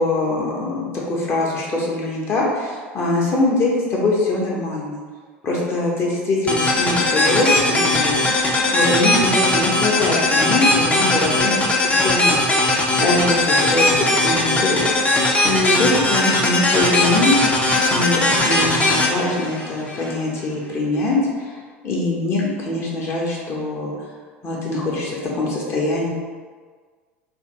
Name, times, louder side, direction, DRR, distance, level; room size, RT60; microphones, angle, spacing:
voice 1, 0.0-5.0 5.4-8.2 8.7-14.9 15.4-17.3 17.9-21.5 21.8-23.9 24.4-26.1, left 2 dB, 35° left, -4 dB, 1.1 m, -22 dB
sound 1, 6.5-20.1, left 2 dB, 15° left, 0.6 m, -19 dB
3.4 x 2.9 x 3.2 m, 1.6 s
figure-of-eight pair, 75°, 7 cm